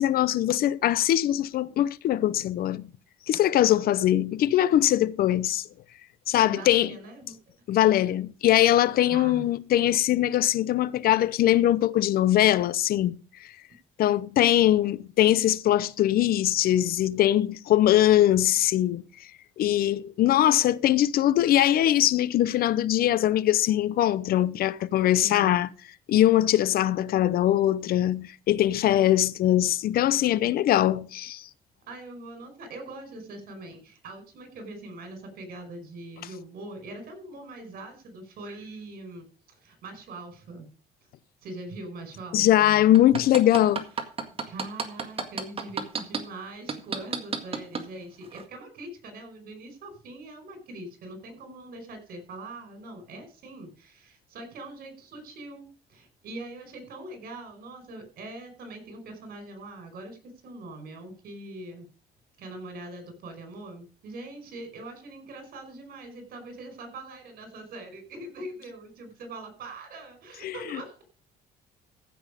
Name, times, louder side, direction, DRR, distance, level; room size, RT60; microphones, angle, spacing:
voice 1, 0.0-2.9 3.3-5.7 6.3-7.0 7.7-13.5 14.0-19.0 19.6-25.7 26.1-31.5 42.3-43.8 70.4-70.5, left 12 dB, 60° left, 0.7 m, -22 dB
voice 2, 6.4-7.4 9.1-9.5 25.2-25.6 31.9-40.7 41.4-42.9 43.3-43.4 44.0-44.1 44.5-61.9 62.4-71.0, right 2 dB, 65° right, 5.1 m, -42 dB
sound 1, 42.9-46.2 46.7-47.8 48.3-48.4, right 5 dB, 35° right, 1.9 m, -29 dB
15.0 x 6.2 x 5.1 m
cardioid pair, 110°, 17 cm